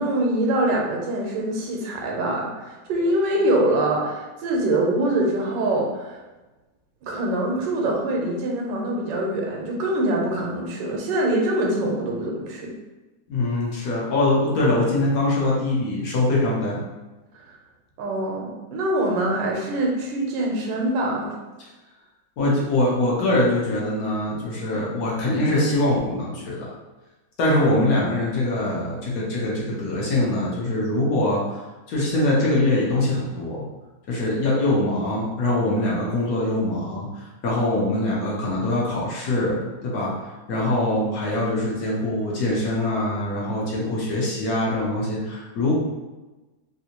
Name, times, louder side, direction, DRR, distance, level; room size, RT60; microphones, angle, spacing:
voice 1, 0.0-6.2 7.0-12.7 17.5-17.6 18.0-21.3, right 1 dB, 80° right, -1 dB, 1.3 m, -24 dB
voice 2, 13.3-16.8 22.4-26.7 27.4-31.4 31.9-33.6 34.1-40.1 40.5-45.7, left 1 dB, 60° left, -5 dB, 1.2 m, -23 dB
3.4 x 2.6 x 2.8 m, 1.1 s
omnidirectional pair, 2.0 m